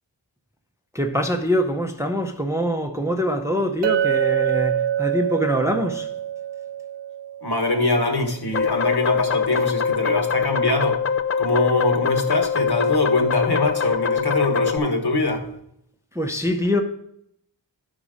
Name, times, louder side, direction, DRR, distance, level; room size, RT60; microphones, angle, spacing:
voice 1, 0.9-6.1 16.1-16.8, equal, 5° right, 0.6 m, -24 dB
Chink clink, 3.8-8.1, right 10 dB, 70° right, 0.5 m, -25 dB
voice 2, 7.4-11.0 11.4-15.4, left 2 dB, 55° left, 1.4 m, -23 dB
sound 1, 8.5-14.8, left 6 dB, 35° left, 0.4 m, -23 dB
11.5 x 4.1 x 4.9 m
wide cardioid pair, 80°, 45 cm